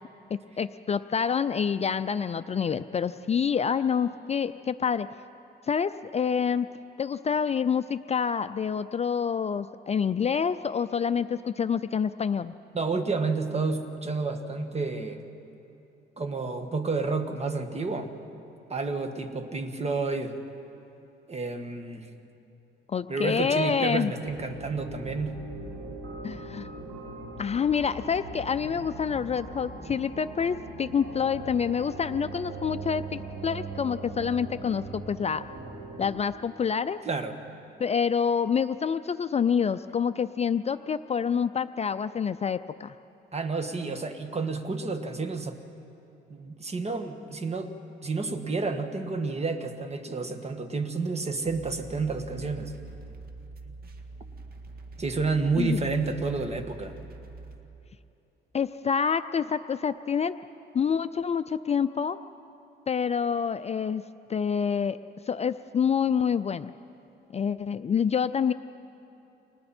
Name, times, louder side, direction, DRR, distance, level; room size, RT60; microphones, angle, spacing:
voice 1, 0.6-5.1 5.6-6.7 7.0-12.5 22.9-24.1 26.2-26.7 27.4-35.4 36.0-37.0 37.8-42.9 55.6-55.9 58.5-60.4 60.7-62.2 62.9-64.0 64.3-65.0 65.3-66.7 67.3-68.5, left 7 dB, 35° left, 11 dB, 0.5 m, -27 dB
voice 2, 12.7-15.2 16.2-18.1 18.7-20.4 21.3-22.1 23.1-25.4 37.1-37.4 43.3-45.6 46.3-47.7 48.0-52.8 55.0-56.9, right 4 dB, 30° right, 6 dB, 1.8 m, -30 dB
sound 1, 24.2-36.1, right 3 dB, 90° right, 6.5 m, -40 dB
sound 2, 51.4-57.6, right 3 dB, 50° right, 1.9 m, -44 dB
30.0 x 25.5 x 4.4 m, 2.9 s
cardioid pair, 90°, 20 cm